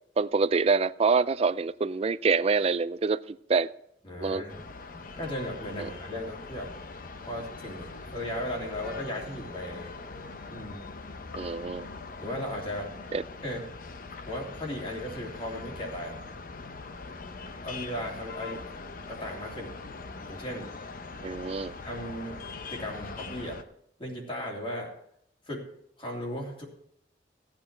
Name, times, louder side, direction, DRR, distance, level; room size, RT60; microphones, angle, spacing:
voice 1, 0.2-3.7 4.2-4.4 5.8-5.9 11.3-11.9 13.1-13.2 21.2-21.7, right 4 dB, 35° right, 16 dB, 0.4 m, -26 dB
voice 2, 4.0-4.6 5.2-6.7 7.2-9.9 10.5-10.9 12.2-12.9 13.4-13.7 14.3-16.2 17.6-18.8 19.1-19.7 20.3-20.7 21.8-22.4 22.7-23.6 24.0-24.9 25.5-25.6 26.0-26.6, left 1 dB, 30° left, -1 dB, 3.0 m, -36 dB
sound 1, 4.5-23.6, left 3 dB, 50° left, 0.8 m, -42 dB
16.0 x 8.8 x 4.4 m, 0.74 s
head